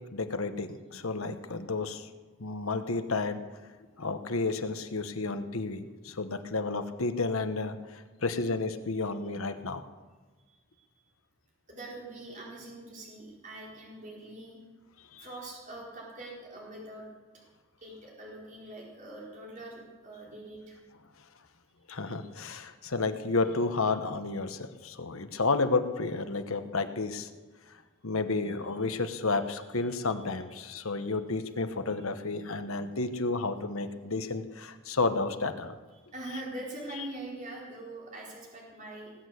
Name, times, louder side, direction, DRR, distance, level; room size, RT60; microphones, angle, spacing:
voice 1, 0.1-2.1 2.4-3.4 4.0-9.8 15.1-15.2 21.9-27.3 28.0-35.7, left 3 dB, 70° left, 9 dB, 1.1 m, -31 dB
voice 2, 10.5-10.9 11.7-14.6 15.2-17.0 17.8-20.8 22.0-22.1 30.1-30.2 30.7-31.1 36.1-39.1, right 1 dB, 35° right, -3 dB, 4.5 m, -43 dB
19.0 x 8.5 x 8.2 m, 1.4 s
head